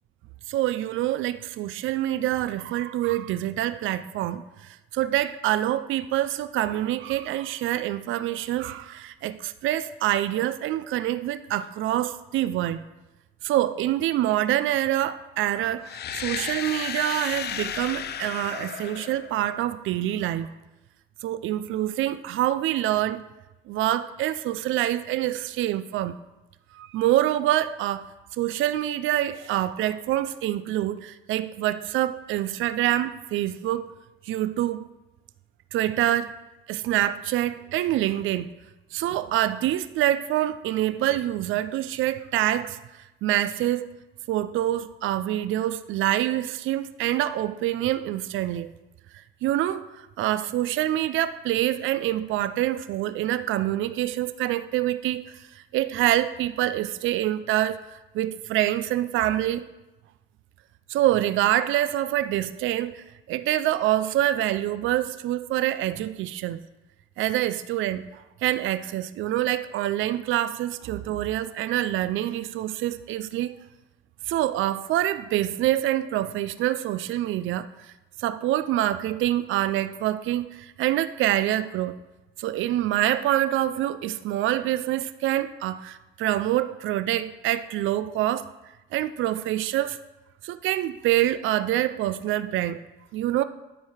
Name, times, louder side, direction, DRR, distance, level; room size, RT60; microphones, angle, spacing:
voice 1, 0.5-4.4 4.9-12.8 13.4-15.9 16.2-20.5 21.2-23.2 23.7-26.2 26.7-28.1 28.4-33.9 34.2-34.8 35.7-36.3 36.7-38.5 38.9-42.8 43.2-43.9 44.3-48.7 49.4-55.3 55.6-57.8 58.1-59.7 60.9-66.6 67.2-73.5 74.3-77.7 78.2-82.0 82.4-88.5 88.9-90.0 90.4-92.8 93.1-93.4, right 13 dB, 80° right, 13 dB, 0.4 m, -26 dB
sound 1, 15.8-19.8, left 9 dB, 55° left, 0.5 m, -33 dB
11.5 x 4.6 x 4.9 m, 1.0 s
cardioid pair, 90°, 20 cm